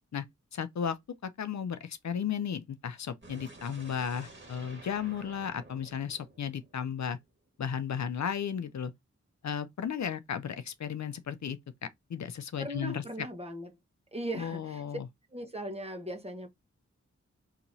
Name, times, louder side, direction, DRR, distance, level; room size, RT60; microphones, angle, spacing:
voice 1, 0.5-1.0 1.2-7.2 7.6-8.9 9.4-13.0 14.4-15.1, left 8 dB, 70° left, 0.6 m, -34 dB
sound 1, 3.2-7.2, right 2 dB, 40° right, 1.7 m, -51 dB
voice 2, 12.6-13.7 14.1-14.8 15.3-16.5, right 1 dB, 20° right, 1.2 m, -38 dB
5.8 x 2.9 x 2.7 m
wide cardioid pair, 110°, 29 cm